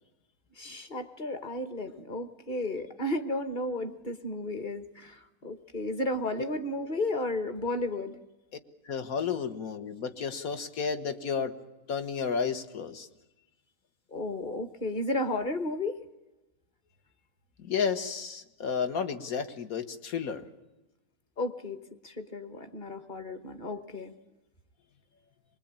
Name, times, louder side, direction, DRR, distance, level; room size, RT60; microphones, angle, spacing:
voice 1, 0.6-8.2 14.1-16.0 21.4-21.8 22.0-24.1, left 1 dB, 35° left, 9 dB, 1.3 m, -33 dB
voice 2, 8.8-11.6 11.9-13.1 17.6-20.5, left 6 dB, 70° left, 8 dB, 1.7 m, -32 dB
24.0 x 21.0 x 8.8 m, 1.0 s
omnidirectional pair, 1.6 m